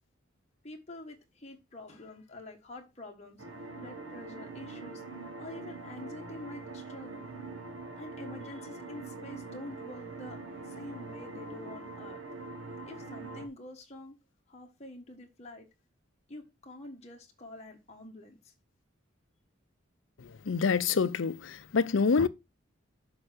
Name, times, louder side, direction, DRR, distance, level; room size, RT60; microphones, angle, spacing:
voice 1, 0.6-3.4 3.8-5.0 5.4-7.3 8.0-10.4 10.6-12.2 12.9-14.2 14.5-15.7 16.3-18.5, left 2 dB, 35° left, 1.4 m, -47 dB
sound 1, 3.4-13.5, right 3 dB, 75° right, 1.6 m, -43 dB
voice 2, 20.5-22.3, left 5 dB, 70° left, 0.5 m, -26 dB
7.1 x 4.7 x 6.5 m
head